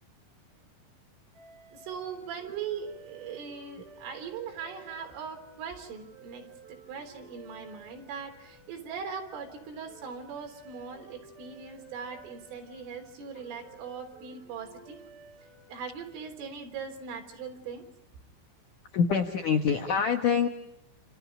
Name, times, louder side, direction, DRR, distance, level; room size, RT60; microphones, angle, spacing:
sound 1, 1.3-16.4, right 3 dB, 60° right, 9.1 m, -54 dB
voice 1, 1.7-15.0 15.7-17.9, right 6 dB, 75° right, 3 dB, 6.1 m, -40 dB
voice 2, 18.9-20.5, left 6 dB, 75° left, 5 dB, 1.8 m, -25 dB
29.0 x 28.5 x 5.0 m, 0.80 s
omnidirectional pair, 5.7 m